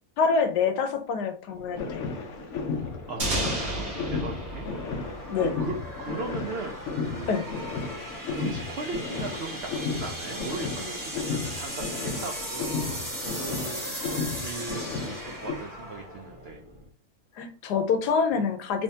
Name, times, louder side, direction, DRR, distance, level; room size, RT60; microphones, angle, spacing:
voice 1, 0.2-2.1 5.3-5.5 7.3-7.5 17.4-18.8, left 5 dB, 85° left, 7 dB, 1.2 m, -26 dB
sound 1, 1.5-16.9, equal, 15° right, 1.1 m, -39 dB
sound 2, 1.7-15.6, left 4 dB, 60° left, 0.9 m, -34 dB
voice 2, 2.8-7.4 8.4-13.9 14.4-16.6, right 4 dB, 80° right, 2 dB, 0.5 m, -38 dB
sound 3, 3.2-6.0, right 1 dB, 40° right, 1.1 m, -32 dB
3.4 x 3.1 x 2.7 m, 0.38 s
omnidirectional pair, 1.7 m